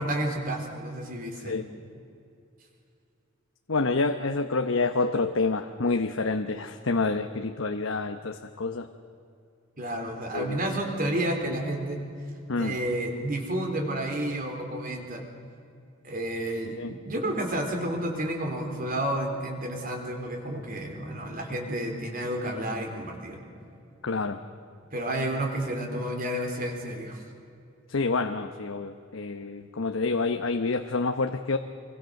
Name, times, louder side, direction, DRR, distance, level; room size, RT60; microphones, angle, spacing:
voice 1, 0.0-1.6 9.8-12.0 12.6-15.3 16.0-23.4 24.9-27.2, right 1 dB, 45° right, 3 dB, 4.0 m, -31 dB
voice 2, 3.7-8.9 10.3-10.6 12.5-12.7 16.7-16.9 24.0-24.4 27.9-31.6, left 3 dB, 75° left, 6 dB, 1.0 m, -28 dB
26.5 x 24.0 x 6.6 m, 2.5 s
head